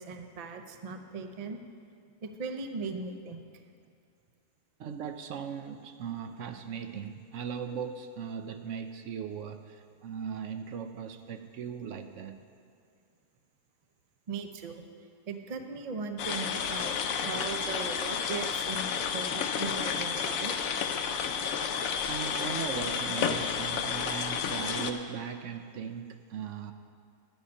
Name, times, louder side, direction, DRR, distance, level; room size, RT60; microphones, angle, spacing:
voice 1, 0.0-1.6 2.2-3.4 14.3-14.8 15.3-16.9 17.2-20.5, right 4 dB, 50° right, 6 dB, 0.4 m, -38 dB
voice 2, 4.8-12.4 22.1-26.7, right 7 dB, 65° right, 8 dB, 0.8 m, -38 dB
sound 1, 16.2-24.9, left 7 dB, 70° left, 1.0 m, -31 dB
11.5 x 9.2 x 5.3 m, 2.3 s
omnidirectional pair, 1.6 m